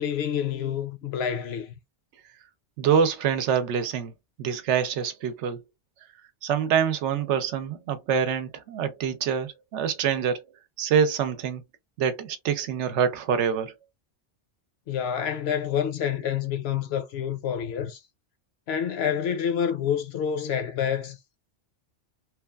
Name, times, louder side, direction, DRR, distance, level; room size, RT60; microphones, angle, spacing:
voice 1, 0.0-1.7 14.9-18.0 18.7-21.2, left 8 dB, 70° left, 0.8 m, -28 dB
voice 2, 2.8-4.1 4.4-5.6 6.4-10.4 10.8-11.6 12.0-13.7, right 7 dB, 85° right, 0.9 m, -25 dB
3.0 x 2.3 x 2.2 m
omnidirectional pair, 1.2 m